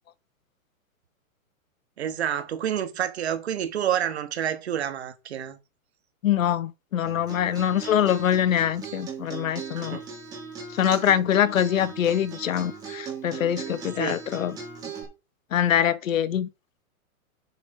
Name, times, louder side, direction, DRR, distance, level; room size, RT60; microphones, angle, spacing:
voice 1, 2.0-5.6 9.9-10.0 14.0-14.2, right 10 dB, 45° right, 1.5 m, -28 dB
voice 2, 6.2-10.0 10.7-14.6 15.5-16.5, left 10 dB, 65° left, 1.0 m, -24 dB
Acoustic guitar, 7.0-15.0, right 6 dB, 10° right, 1.9 m, -39 dB
7.4 x 6.1 x 5.5 m
hypercardioid pair, 180°, 43 cm